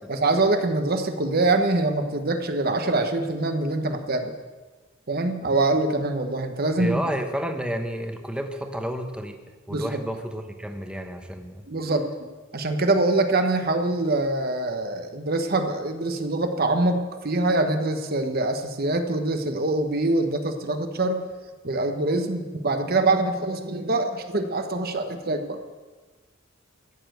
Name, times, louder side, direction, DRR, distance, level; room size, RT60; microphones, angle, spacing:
voice 1, 0.1-4.3 5.1-7.0 9.7-9.9 11.7-21.3 21.6-25.6, right 2 dB, 50° right, 6 dB, 1.1 m, -24 dB
voice 2, 6.8-9.4 9.7-11.7, equal, 5° right, 5 dB, 1.0 m, -30 dB
14.0 x 6.9 x 7.9 m, 1.3 s
head